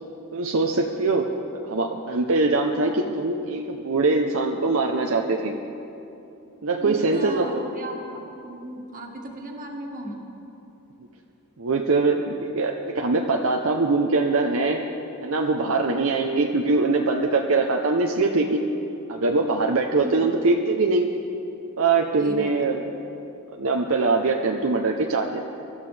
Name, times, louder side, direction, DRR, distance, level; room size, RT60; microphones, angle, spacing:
voice 1, 0.3-1.3 1.7-5.6 6.6-7.5 11.6-14.8 15.2-18.7 19.1-21.1 21.8-22.8 23.5-25.4, right 3 dB, 65° right, 2 dB, 0.7 m, -22 dB
voice 2, 2.8-3.2 6.8-10.2 16.1-16.3 20.0-20.3 22.2-22.5, right 1 dB, 35° right, 0 dB, 1.8 m, -36 dB
24.5 x 13.5 x 3.4 m, 2.9 s
head